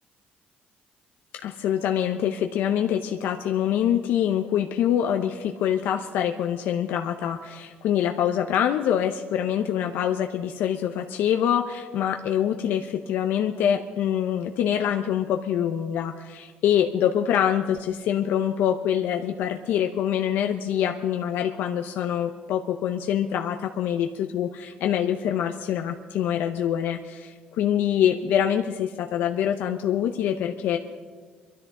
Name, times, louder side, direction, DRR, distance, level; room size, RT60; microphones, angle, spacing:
voice 1, 1.4-30.8, left 9 dB, 85° left, 4 dB, 0.7 m, -25 dB
22.5 x 13.0 x 3.7 m, 1.5 s
cardioid pair, 115°, 3 cm